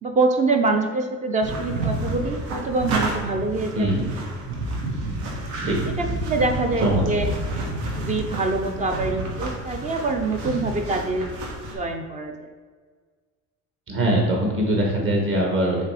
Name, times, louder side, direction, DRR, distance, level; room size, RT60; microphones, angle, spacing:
voice 1, 0.0-3.9 6.0-7.3 8.0-11.3 11.7-12.5, right 3 dB, 25° right, 5 dB, 0.4 m, -25 dB
sound 1, 1.4-11.7, right 1 dB, 85° right, 1.6 m, -30 dB
voice 2, 13.9-15.9, right 1 dB, 40° right, 0 dB, 1.3 m, -22 dB
7.1 x 3.3 x 4.8 m, 1.5 s
cardioid pair, 175°, 33 cm